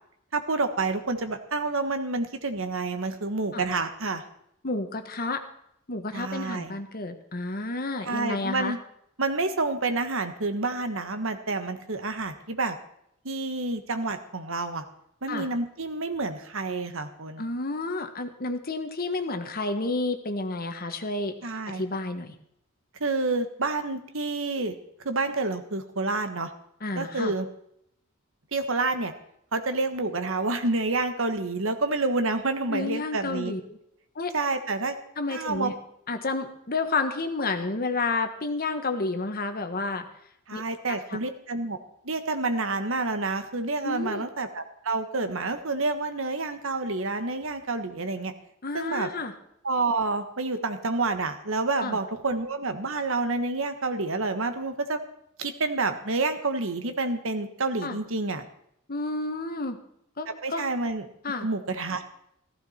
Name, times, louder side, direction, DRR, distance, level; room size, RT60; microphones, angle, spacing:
voice 1, 0.3-4.2 6.1-6.7 8.0-8.8 9.2-12.8 13.2-14.8 15.2-17.4 21.4-21.8 23.0-24.7 25.0-26.5 27.0-27.5 28.5-29.1 29.5-33.5 34.3-34.9 35.3-35.7 40.5-41.8 42.0-48.3 48.7-49.1 49.6-55.0 55.4-58.4 60.4-61.1 61.4-62.0, right 3 dB, 65° right, 8 dB, 1.4 m, -28 dB
voice 2, 4.6-5.4 5.9-8.7 15.3-15.5 17.4-22.3 26.8-27.3 32.7-33.8 34.1-34.3 35.2-35.7 36.1-40.1 40.5-40.6 40.9-41.2 43.8-44.3 48.6-49.3 51.8-52.0 57.8-58.0 58.9-59.8 60.2-60.7 61.2-61.5, left 3 dB, 45° left, 7 dB, 1.4 m, -30 dB
15.5 x 15.0 x 4.4 m, 0.73 s
head